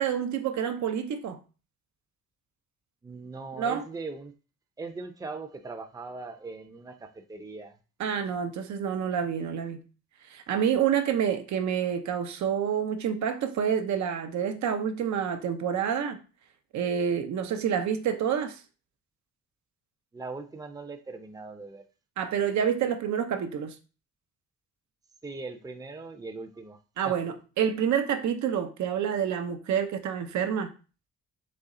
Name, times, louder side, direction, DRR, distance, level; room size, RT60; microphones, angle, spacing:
voice 1, 0.0-1.4 3.6-3.8 8.0-9.8 10.3-16.2 16.7-18.6 22.2-23.7 27.0-30.7, right 8 dB, 70° right, 0.7 m, -28 dB
voice 2, 3.0-4.3 4.8-7.8 20.1-21.8 25.2-26.8 27.0-27.1, right 3 dB, 10° right, 0.6 m, -40 dB
4.3 x 3.1 x 3.8 m
cardioid pair, 90°, 30 cm